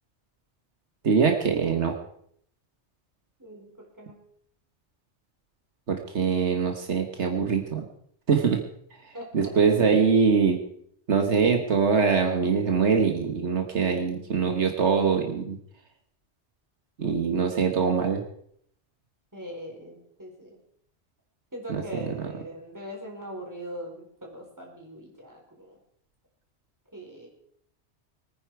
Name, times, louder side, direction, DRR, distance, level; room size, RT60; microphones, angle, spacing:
voice 1, 1.0-2.0 5.9-7.8 8.3-8.6 9.3-10.6 11.1-15.6 17.0-18.2 21.7-22.0, right 5 dB, 75° right, 4 dB, 1.7 m, -23 dB
voice 2, 3.4-3.7 4.0-4.2 9.1-9.9 19.3-20.6 21.5-25.8 26.9-27.3, equal, 15° right, -1 dB, 4.3 m, -41 dB
22.5 x 9.7 x 4.7 m, 0.67 s
omnidirectional pair, 1.2 m